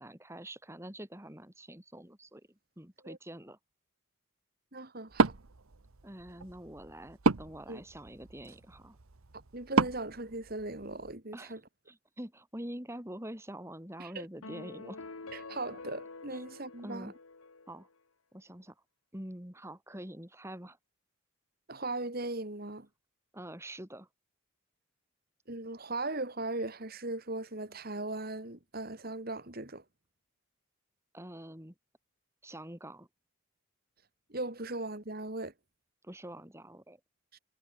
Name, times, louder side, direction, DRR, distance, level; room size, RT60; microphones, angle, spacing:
voice 1, 0.0-2.4 2.8-3.6 6.0-9.0 11.3-11.5 11.9-15.0 16.3-16.4 16.8-17.1 17.7-17.9 18.3-18.7 19.1-20.8 23.3-24.1 31.1-31.7 32.4-33.1 36.0-37.0, right 1 dB, 10° right, 3.4 m, -45 dB
voice 2, 4.7-5.4 7.7-7.8 9.5-11.6 14.0-14.3 15.3-17.1 21.7-22.9 25.5-29.8 34.3-35.5 37.3-37.4, right 2 dB, 45° right, 2.5 m, -38 dB
Wood, 5.1-11.1, right 3 dB, 80° right, 1.1 m, -33 dB
sound 1, 14.4-17.9, left 3 dB, 80° left, 1.5 m, -47 dB
head